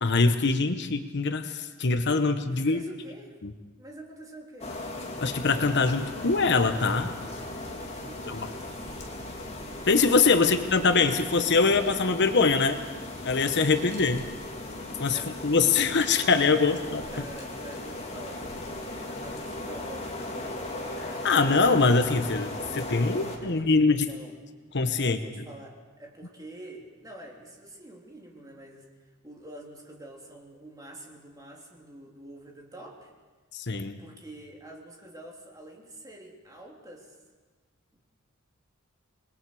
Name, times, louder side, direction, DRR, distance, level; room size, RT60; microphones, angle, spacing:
voice 1, 0.0-2.8 3.4-3.5 5.2-7.1 8.3-8.4 9.9-12.8 13.2-14.3 15.0-17.0 21.0-24.1 24.7-25.2 33.5-34.0, left 4 dB, 55° left, 8 dB, 1.0 m, -23 dB
voice 2, 2.5-3.4 3.8-4.8 8.1-9.5 10.3-10.6 15.1-15.4 17.1-20.6 23.4-24.4 24.9-28.9 29.2-33.1 34.0-37.1 37.9-38.0, right 1 dB, 20° right, -1 dB, 3.3 m, -47 dB
sound 1, 4.6-23.4, left 1 dB, 30° left, 2.7 m, -37 dB
28.0 x 20.5 x 4.9 m, 1.3 s
head